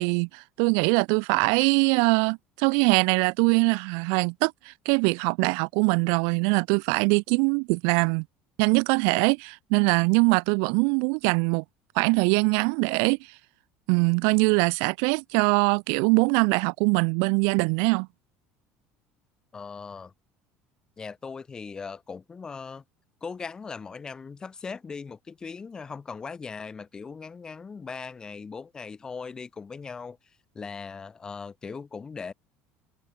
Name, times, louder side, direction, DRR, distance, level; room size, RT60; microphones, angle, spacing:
voice 1, 0.0-8.2 8.6-11.6 12.0-13.3 13.9-18.1, right 40 dB or more, 75° right, 0.4 m, -23 dB
voice 2, 19.5-20.1 21.0-22.8 23.2-30.2 30.5-32.3, left 5 dB, 15° left, 2.3 m, -39 dB
cardioid pair, 170°, 4 cm